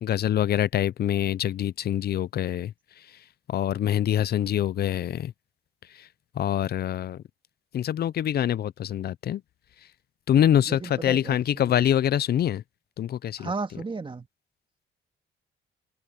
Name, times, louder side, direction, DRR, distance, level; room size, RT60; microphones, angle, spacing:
voice 1, 0.0-2.7 3.5-5.3 6.4-7.2 7.7-9.4 10.3-12.6 13.0-13.5, left 10 dB, 55° left, 0.5 m, -25 dB
voice 2, 10.7-11.7 13.4-14.3, right 4 dB, 25° right, 2.1 m, -34 dB
open air
cardioid pair, 90°, 20 cm